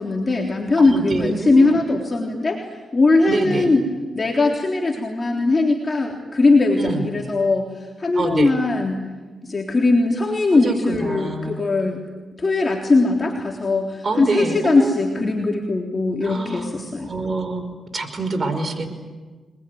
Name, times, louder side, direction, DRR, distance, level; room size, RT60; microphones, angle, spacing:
voice 1, 0.0-2.6 2.9-3.8 4.1-9.0 9.4-12.0 12.4-17.1, left 3 dB, 35° left, 0 dB, 3.5 m, -20 dB
voice 2, 0.8-1.8 3.3-3.7 6.8-7.1 8.1-8.5 10.5-11.6 14.0-15.2 16.2-16.7 17.1-17.6 17.9-18.9, right 2 dB, 50° right, 9 dB, 5.0 m, -26 dB
29.5 x 21.0 x 9.5 m, 1.4 s
cardioid pair, 65°, 0 cm